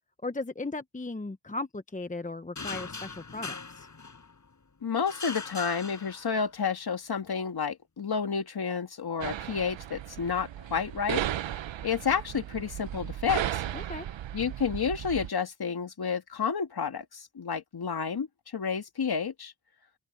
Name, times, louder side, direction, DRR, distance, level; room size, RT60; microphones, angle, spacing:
voice 1, 0.2-3.9 13.7-14.1, left 2 dB, 15° left, 1.0 m, -37 dB
sound 1, 2.6-4.5 5.1-6.6, left 4 dB, 40° left, 6.2 m, -40 dB
voice 2, 4.8-13.6 14.3-18.3 18.5-19.5, left 6 dB, 55° left, 2.2 m, -30 dB
sound 2, 9.2-15.3, right 11 dB, 80° right, 0.9 m, -35 dB
open air
cardioid pair, 60°, 44 cm